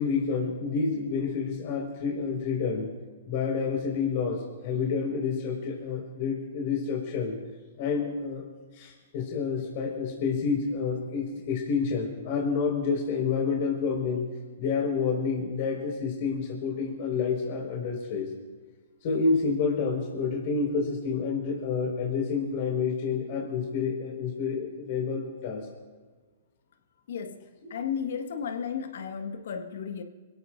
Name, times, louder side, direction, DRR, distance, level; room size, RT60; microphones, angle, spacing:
voice 1, 0.0-2.9 3.3-7.3 7.8-8.4 8.7-14.3 14.6-18.3 19.0-25.7 27.6-27.8, left 5 dB, 50° left, -1 dB, 5.1 m, -29 dB
voice 2, 27.7-30.0, left 7 dB, 65° left, 6 dB, 1.7 m, -33 dB
28.0 x 17.0 x 2.6 m, 1.4 s
hypercardioid pair, 120°, 0 cm